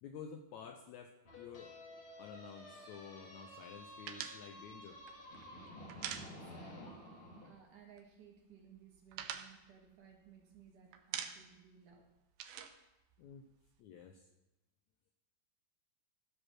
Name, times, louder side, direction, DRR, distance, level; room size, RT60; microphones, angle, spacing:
voice 1, 0.0-1.8 2.2-5.0 13.2-13.5 13.8-14.3, left 7 dB, 80° left, 5 dB, 1.7 m, -51 dB
sound 1, 1.2-7.5, left 1 dB, 40° left, 2.7 m, -52 dB
sound 2, 4.1-6.9 7.1-7.3 7.6-8.3 8.6-10.6 10.9-11.7 11.9-13.8, right 9 dB, 85° right, 2.5 m, -46 dB
voice 2, 6.2-12.1, right 7 dB, 65° right, 0 dB, 3.1 m, -60 dB
15.0 x 5.1 x 6.2 m, 0.96 s
omnidirectional pair, 4.0 m